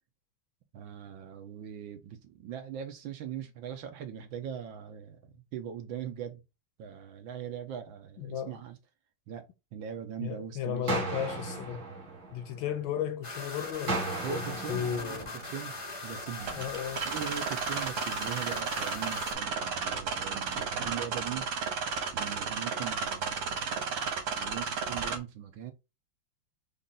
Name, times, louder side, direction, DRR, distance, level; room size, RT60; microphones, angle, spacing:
voice 1, 0.7-6.4 6.8-8.8 9.3-9.5 9.7-11.1 14.2-15.7 16.0-16.7 17.0-21.5 22.1-25.7, right 9 dB, 70° right, 1.4 m, -40 dB
voice 2, 8.2-8.6 10.2-11.9 12.3-14.4 14.7-15.3 16.5-17.1, left 9 dB, 75° left, 1.2 m, -35 dB
sound 1, 10.9-12.9 13.9-15.9, right 2 dB, 40° right, 1.5 m, -36 dB
sound 2, 13.2-19.3, left 2 dB, 35° left, 0.5 m, -40 dB
sound 3, 16.4-25.2, right 5 dB, 90° right, 2.0 m, -33 dB
5.3 x 2.5 x 3.7 m
omnidirectional pair, 2.4 m